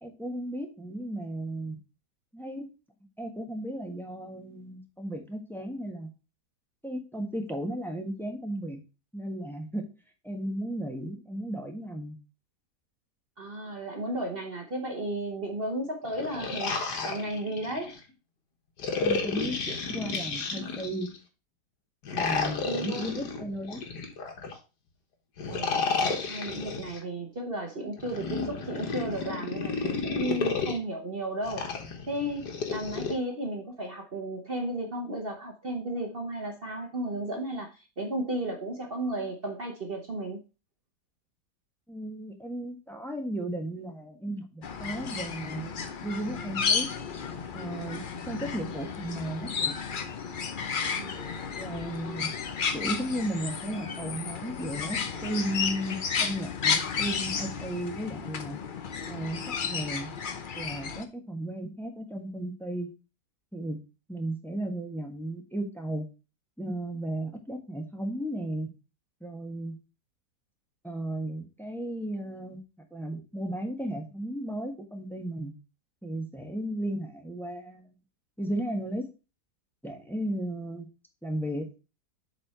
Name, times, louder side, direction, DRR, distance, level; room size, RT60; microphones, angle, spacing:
voice 1, 0.0-1.8 2.3-2.7 3.2-6.1 6.8-8.8 9.1-9.8 10.2-12.2 19.0-21.1 22.1-23.8 41.9-45.7 46.0-46.9 47.5-49.8 51.5-52.3 52.7-58.6 59.1-62.9 63.5-63.8 64.1-66.1 66.6-68.7 69.2-69.8 70.8-72.6 72.9-75.5 76.0-77.9 78.4-79.0 79.8-80.9 81.2-81.7, right 1 dB, ahead, 3 dB, 1.2 m, -35 dB
voice 2, 13.4-18.0 22.3-23.1 25.5-25.9 26.2-31.7 32.1-40.4 51.0-51.2 52.0-52.2, right 1 dB, 40° right, 2 dB, 1.1 m, -34 dB
sound 1, 16.1-18.0 18.8-21.2 22.0-24.6 25.4-27.0 28.0-30.8 31.5-33.1, left 4 dB, 80° left, 1.9 m, -32 dB
sound 2, 44.6-61.0, left 6 dB, 50° left, 0.6 m, -33 dB
7.6 x 4.3 x 4.3 m, 0.30 s
omnidirectional pair, 1.7 m